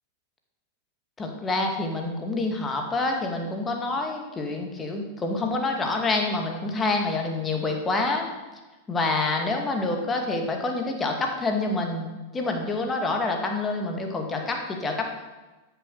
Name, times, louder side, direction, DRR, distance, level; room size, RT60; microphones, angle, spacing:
voice 1, 1.2-8.3 8.9-15.1, left 2 dB, 20° left, 2 dB, 2.2 m, -27 dB
13.0 x 7.2 x 6.6 m, 1.2 s
figure-of-eight pair, 90°, 0 cm